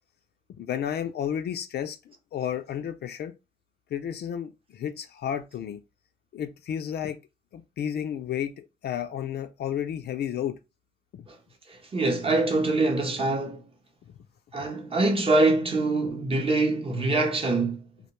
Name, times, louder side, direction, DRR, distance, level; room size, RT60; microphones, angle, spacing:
voice 1, 0.6-3.3 3.9-5.8 6.3-7.2 7.5-10.6 11.1-11.3, left 9 dB, 55° left, 0.4 m, -32 dB
voice 2, 11.7-13.7 14.5-17.9, right 2 dB, 30° right, 0.8 m, -24 dB
2.2 x 2.1 x 2.9 m
cardioid pair, 90°, 20 cm